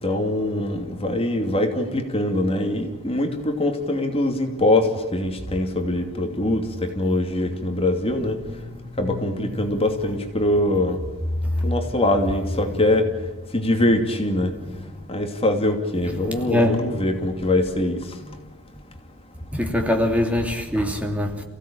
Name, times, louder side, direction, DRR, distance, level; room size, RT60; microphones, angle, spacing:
voice 1, 0.0-8.4 9.0-11.0 11.6-13.1 13.5-14.5 15.1-18.0, left 1 dB, 30° left, 2.7 m, -23 dB
voice 2, 8.4-9.9 11.4-11.6 14.5-14.9 16.0-17.0 18.2-18.4 19.5-21.4, left 1 dB, 5° right, 2.9 m, -25 dB
29.0 x 17.0 x 8.9 m
head